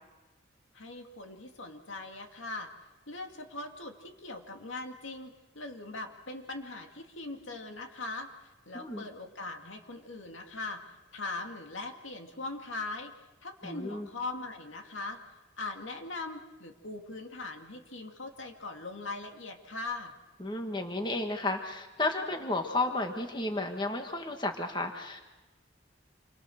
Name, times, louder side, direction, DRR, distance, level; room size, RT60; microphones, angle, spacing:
voice 1, 0.7-2.7 3.1-8.3 8.7-10.8 11.1-13.1 13.4-15.2 15.6-20.1, left 3 dB, 80° left, 3 dB, 2.3 m, -40 dB
voice 2, 13.6-14.1 20.4-25.2, left 2 dB, 25° left, 4 dB, 1.5 m, -32 dB
27.5 x 24.5 x 6.5 m, 1.1 s
head